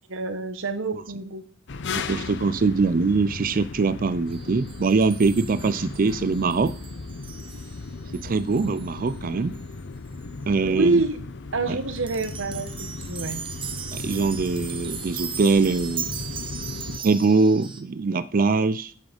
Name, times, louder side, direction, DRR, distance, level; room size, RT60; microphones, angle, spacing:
voice 1, 0.1-1.4 10.6-11.2 11.5-13.4, right 3 dB, 70° right, 9 dB, 1.2 m, -26 dB
sound 1, 1.7-17.0, left 3 dB, 60° left, 0.7 m, -36 dB
voice 2, 2.0-6.7 8.1-9.6 10.5-11.0 11.7-11.8 13.9-16.1 17.0-18.9, right 4 dB, 45° right, 14 dB, 0.4 m, -22 dB
sound 2, 4.3-9.2 9.5-9.6 10.1-10.3 11.9-17.8, right 7 dB, 25° right, 0.8 m, -38 dB
8.4 x 6.2 x 5.1 m, 0.43 s
head